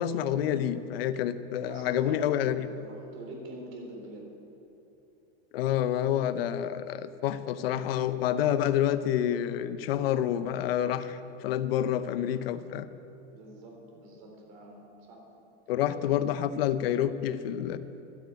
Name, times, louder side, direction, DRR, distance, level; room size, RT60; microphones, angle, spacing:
voice 1, 0.0-2.7 5.5-12.9 15.7-17.8, left 10 dB, 60° left, 13 dB, 0.8 m, -28 dB
voice 2, 1.6-4.3 13.3-15.2, right 1 dB, 40° right, 1 dB, 3.8 m, -45 dB
12.5 x 10.5 x 8.3 m, 2.9 s
supercardioid pair, 170°, 34 cm